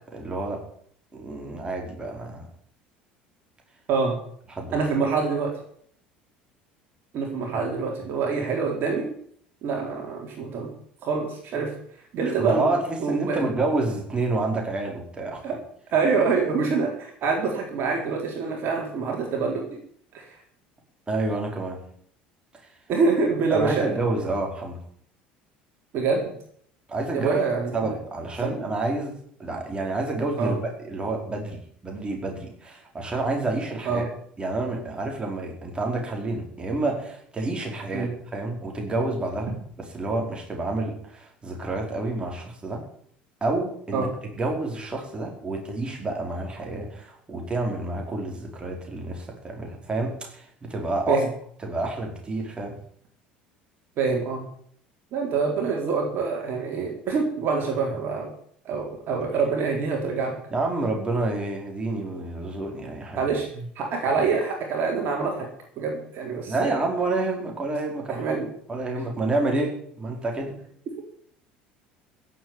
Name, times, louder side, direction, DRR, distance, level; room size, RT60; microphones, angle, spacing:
voice 1, 0.1-0.7 1.1-2.5 4.5-4.8 12.4-15.4 21.1-21.8 22.6-22.7 23.5-24.8 26.9-27.4 27.7-34.1 34.4-42.8 43.4-51.2 51.6-52.8 60.5-63.3 63.5-63.6 64.0-64.2 66.5-68.4 68.7-70.6, right 2 dB, 20° right, 1 dB, 5.0 m, -29 dB
voice 2, 4.7-5.5 7.1-9.1 9.6-10.7 11.0-11.7 12.1-12.7 13.0-13.5 15.4-15.5 15.9-19.6 20.1-20.3 22.9-23.9 25.9-26.3 27.1-27.7 28.4-28.6 30.4-30.5 33.9-34.0 37.9-38.1 43.9-44.1 51.1-51.3 54.0-54.4 55.1-58.3 58.6-60.4 63.2-63.5 63.8-65.5 65.8-66.8 68.1-68.5, right 4 dB, 45° right, 0 dB, 4.2 m, -25 dB
16.0 x 8.0 x 9.4 m, 0.62 s
figure-of-eight pair, 65°, 5 cm